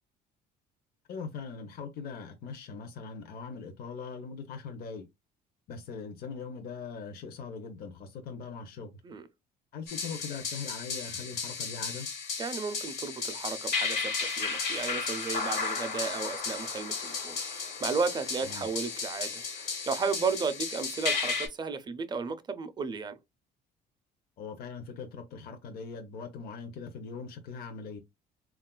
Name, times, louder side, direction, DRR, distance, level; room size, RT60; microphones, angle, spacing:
voice 1, 1.1-5.0 5.7-9.0 9.7-12.1 18.4-18.7 24.4-28.0, left 5 dB, 60° left, 0.6 m, -41 dB
sound 1, 9.9-21.5, left 5 dB, 85° left, 1.1 m, -34 dB
voice 2, 12.4-17.4 17.8-23.2, right 5 dB, 25° right, 0.4 m, -34 dB
3.6 x 2.3 x 2.2 m
cardioid pair, 110°, 17 cm